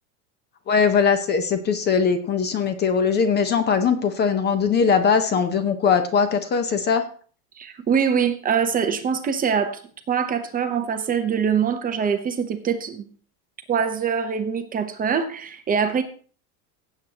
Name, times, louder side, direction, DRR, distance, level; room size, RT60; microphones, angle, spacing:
voice 1, 0.7-7.0, left 6 dB, 25° left, 10 dB, 0.8 m, -20 dB
voice 2, 7.6-9.8 10.1-13.1 13.7-16.0, right 7 dB, 20° right, 7 dB, 0.8 m, -23 dB
16.5 x 7.9 x 2.9 m, 0.43 s
supercardioid pair, 145°, 43 cm